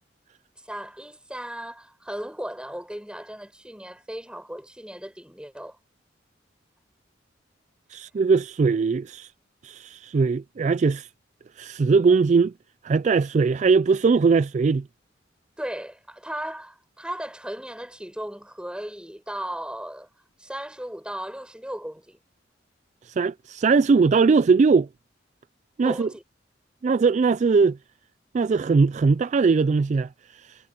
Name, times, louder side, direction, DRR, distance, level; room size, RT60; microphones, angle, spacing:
voice 1, 0.6-5.8 15.6-20.1 20.4-22.2 25.8-26.2, right 1 dB, 5° right, 6.9 m, -36 dB
voice 2, 7.9-9.3 9.6-11.1 11.6-12.5 12.8-14.8 23.1-24.9 25.8-26.1 26.8-27.8 28.3-30.1, right 4 dB, 40° right, 0.3 m, -20 dB
head